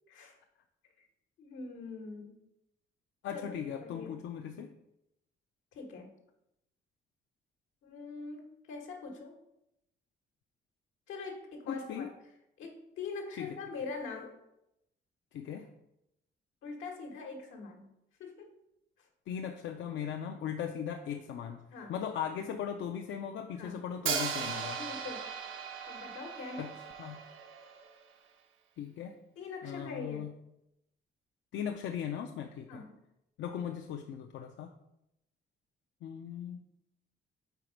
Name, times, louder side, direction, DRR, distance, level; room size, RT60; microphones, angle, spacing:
voice 1, 1.4-2.4 3.3-4.1 5.7-6.1 7.8-9.4 11.1-12.1 12.6-14.4 16.6-17.9 18.2-18.6 19.0-19.1 21.7-21.9 23.5-23.8 24.7-25.3 25.9-26.7 29.4-30.3 32.7-32.9, left 4 dB, 90° left, 2 dB, 1.2 m, -43 dB
voice 2, 3.2-4.7 11.7-12.1 13.4-13.5 15.3-15.7 19.3-21.6 21.9-24.8 26.6-26.7 27.0-27.2 28.8-29.2 29.6-30.3 31.5-32.8 33.4-34.7 36.0-36.6, left 8 dB, 70° left, 3 dB, 0.5 m, -38 dB
Hi-hat, 24.1-28.0, right 6 dB, 80° right, 0.8 m, -37 dB
4.6 x 4.1 x 5.0 m, 0.85 s
cardioid pair, 90°, 20 cm